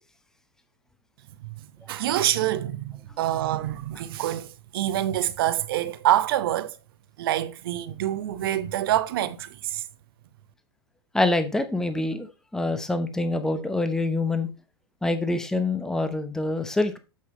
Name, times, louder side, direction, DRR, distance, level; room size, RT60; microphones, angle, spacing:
voice 1, 1.9-6.8 7.2-9.8, right 13 dB, 60° right, 0.9 m, -26 dB
voice 2, 11.1-12.3 12.5-14.5 15.0-17.0, left 2 dB, 5° left, 0.9 m, -25 dB
8.5 x 6.0 x 3.2 m
hypercardioid pair, 105°, 14 cm